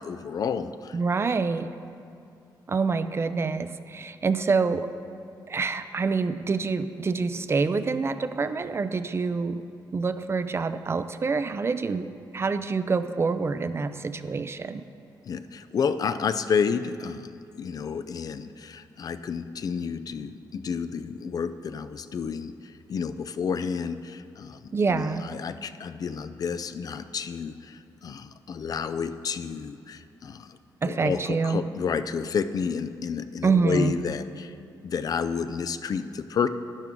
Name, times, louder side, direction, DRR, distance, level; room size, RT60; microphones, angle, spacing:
voice 1, 0.0-1.0 15.2-34.5 34.8-36.5, left 6 dB, 50° left, 11 dB, 0.4 m, -30 dB
voice 2, 0.9-1.7 2.7-4.9 5.5-9.6 9.9-12.1 12.3-14.8 24.7-25.3 30.8-31.6 33.4-33.9, right 4 dB, 35° right, 11 dB, 0.4 m, -26 dB
11.5 x 10.5 x 3.7 m, 2.4 s
cardioid pair, 105°, 8 cm